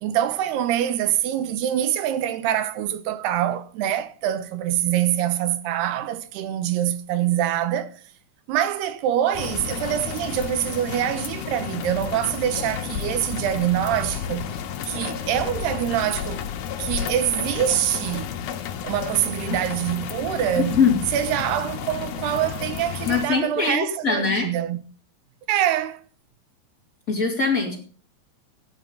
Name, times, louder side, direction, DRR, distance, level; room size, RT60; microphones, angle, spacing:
voice 1, 0.0-7.9 8.5-14.6 14.8-16.4 16.8-18.3 18.8-20.8 21.1-24.8 25.5-26.0, right 11 dB, 85° right, 3.0 m, -25 dB
sound 1, 9.3-23.3, left 8 dB, 75° left, 3.1 m, -32 dB
voice 2, 20.6-21.0 23.0-24.5 27.1-27.8, left 5 dB, 20° left, 3.1 m, -22 dB
15.5 x 10.5 x 5.6 m
omnidirectional pair, 4.6 m